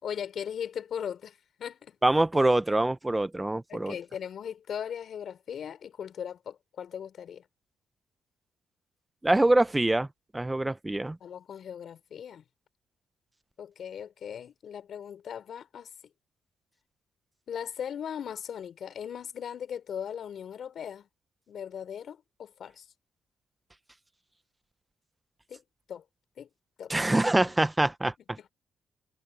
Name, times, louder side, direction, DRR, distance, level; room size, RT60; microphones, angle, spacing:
voice 1, 0.0-2.0 3.7-7.4 11.2-12.4 13.6-15.9 17.5-21.1 21.5-22.8 25.5-25.6 25.9-26.0 26.4-26.5 26.8-26.9, left 8 dB, 60° left, 4.1 m, -38 dB
voice 2, 2.0-3.9 9.2-10.1 10.3-11.2 26.9-28.5, right 2 dB, 15° right, 1.0 m, -25 dB
cardioid pair, 90°, 0 cm